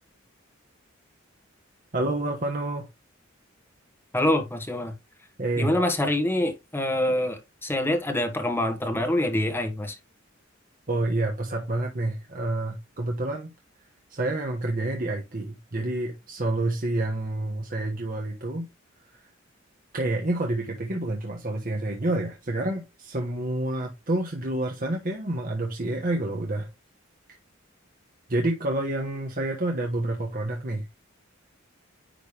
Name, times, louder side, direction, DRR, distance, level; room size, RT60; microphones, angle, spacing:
voice 1, 1.9-2.8 5.4-5.7 10.9-13.5 14.1-18.7 19.9-26.7 28.3-30.9, right 2 dB, 45° right, 1.2 m, -28 dB
voice 2, 4.1-4.9 5.6-9.9, left 1 dB, 10° left, 1.5 m, -25 dB
10.0 x 3.4 x 3.3 m
head